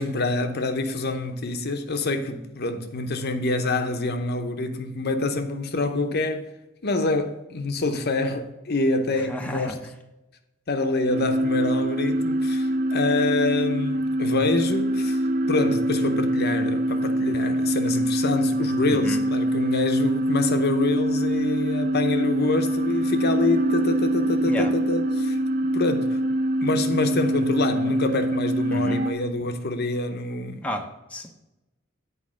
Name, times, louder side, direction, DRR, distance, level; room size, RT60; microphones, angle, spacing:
voice 1, 0.0-6.5 6.8-9.8 10.7-15.2 15.5-25.4 25.7-26.2 26.6-30.6, left 2 dB, 55° left, 0.8 m, -26 dB
voice 2, 9.2-9.8 18.9-19.3 24.5-24.7 28.7-29.0 30.6-31.3, equal, 5° left, 0.7 m, -32 dB
sound 1, 11.1-29.1, right 1 dB, 45° right, 0.7 m, -24 dB
8.5 x 4.7 x 6.2 m
head